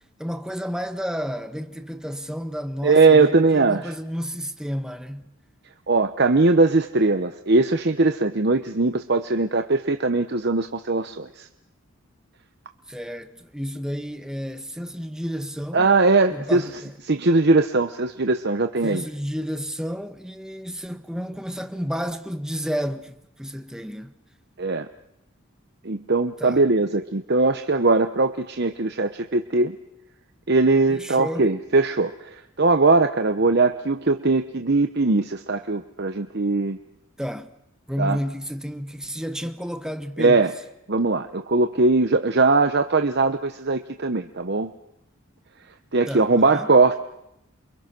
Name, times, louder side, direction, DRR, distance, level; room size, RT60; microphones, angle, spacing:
voice 1, 0.2-5.4 12.9-15.9 16.3-17.0 18.8-24.1 26.4-26.6 30.9-31.5 37.2-37.5 37.9-40.5 46.1-46.7, equal, 5° right, 1.5 m, -31 dB
voice 2, 2.8-3.9 5.9-11.5 15.7-16.7 17.0-19.0 24.6-24.9 25.8-29.8 30.5-36.8 38.0-38.2 40.2-40.5 40.9-44.7 45.9-46.9, right 3 dB, 55° right, 1.0 m, -20 dB
28.5 x 24.5 x 6.1 m
head